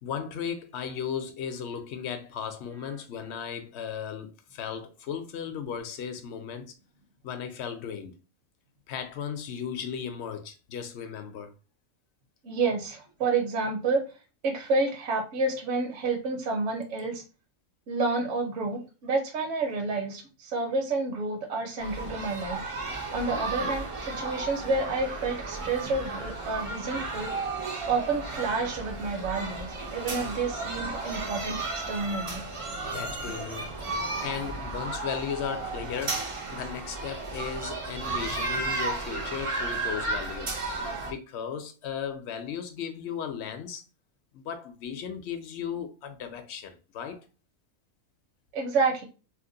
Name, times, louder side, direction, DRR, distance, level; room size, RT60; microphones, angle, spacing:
voice 1, 0.0-6.7 7.2-8.2 8.9-11.5 22.0-22.2 23.2-23.8 30.2-30.3 32.8-40.6 41.0-43.8 44.3-47.2, left 7 dB, 65° left, 0.8 m, -36 dB
voice 2, 12.4-14.0 14.4-17.2 17.9-22.7 23.1-27.3 27.9-31.6 31.9-32.4 48.5-49.0, right 3 dB, 65° right, 1.1 m, -29 dB
sound 1, 21.8-41.1, right 3 dB, 50° right, 0.4 m, -34 dB
2.8 x 2.1 x 3.7 m
omnidirectional pair, 1.4 m